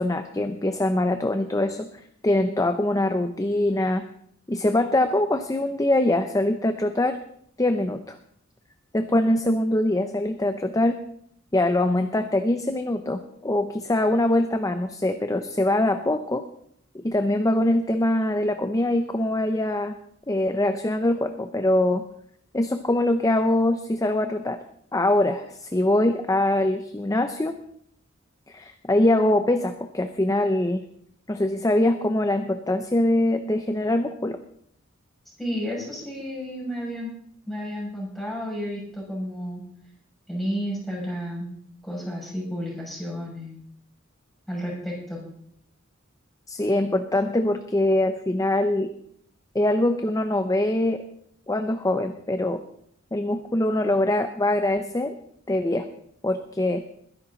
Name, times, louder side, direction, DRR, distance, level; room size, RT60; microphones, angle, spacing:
voice 1, 0.0-1.9 2.2-4.1 4.5-7.2 7.6-8.2 8.9-11.0 11.5-16.4 16.9-19.9 20.3-22.1 22.5-24.6 24.9-27.6 28.5-30.8 31.3-34.4 46.5-48.9 49.5-51.0 51.5-52.6 53.1-55.1 55.5-55.9 56.2-56.8, left 1 dB, 15° left, 8 dB, 0.6 m, -23 dB
voice 2, 35.4-37.1 37.5-39.6 40.3-41.5 41.8-43.5 44.5-45.2, equal, ahead, -4 dB, 6.3 m, -31 dB
21.0 x 10.5 x 4.0 m, 0.70 s
head